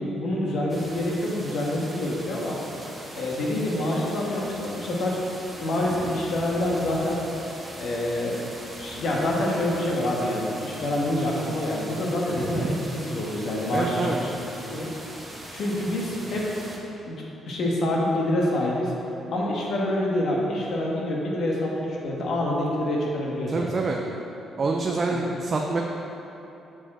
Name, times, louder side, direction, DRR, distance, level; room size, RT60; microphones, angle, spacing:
voice 1, 0.0-2.6 3.1-5.2 5.6-7.2 7.7-8.4 8.8-14.3 14.7-14.9 15.5-16.5 17.1-18.9 19.3-23.7 25.1-25.4, left 1 dB, 65° left, -3 dB, 1.4 m, -26 dB
sound 1, 0.7-16.8, right 1 dB, 15° right, 1.2 m, -41 dB
voice 2, 12.4-12.8 13.7-14.2 23.5-24.0 24.6-25.8, right 3 dB, 40° right, 1 dB, 0.5 m, -27 dB
7.1 x 5.1 x 4.3 m, 2.9 s
cardioid pair, 90°, 0 cm